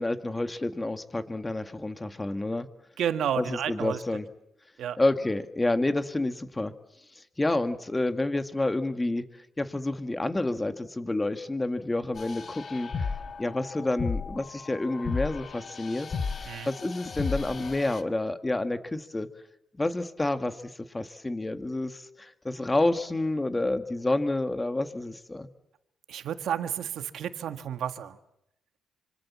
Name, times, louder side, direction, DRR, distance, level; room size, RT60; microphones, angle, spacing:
voice 1, 0.0-2.7 3.4-4.3 5.0-6.7 7.1-13.1 13.4-19.3 19.8-25.5, left 2 dB, 15° left, 9 dB, 1.9 m, -29 dB
voice 2, 3.0-4.0 4.8-5.0 16.5-16.7 26.1-28.2, right 9 dB, 70° right, 9 dB, 1.7 m, -31 dB
sound 1, 12.2-18.0, left 5 dB, 45° left, 1.5 m, -35 dB
26.0 x 25.0 x 7.5 m, 0.81 s
cardioid pair, 90°, 0 cm